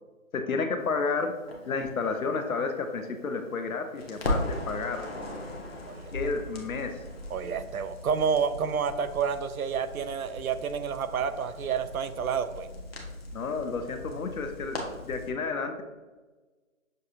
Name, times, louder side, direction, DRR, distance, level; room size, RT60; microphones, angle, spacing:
voice 1, 0.3-1.3 1.7-5.1 6.1-7.0 13.3-14.8 15.0-15.8, left 4 dB, 80° left, 6 dB, 0.8 m, -31 dB
Crackle, 1.5-3.6 3.9-15.3, left 1 dB, 45° left, 0.8 m, -38 dB
voice 2, 5.9-6.3 7.3-12.7, right 6 dB, 90° right, 11 dB, 0.6 m, -29 dB
6.5 x 2.5 x 2.8 m, 1.3 s
hypercardioid pair, 175°, 41 cm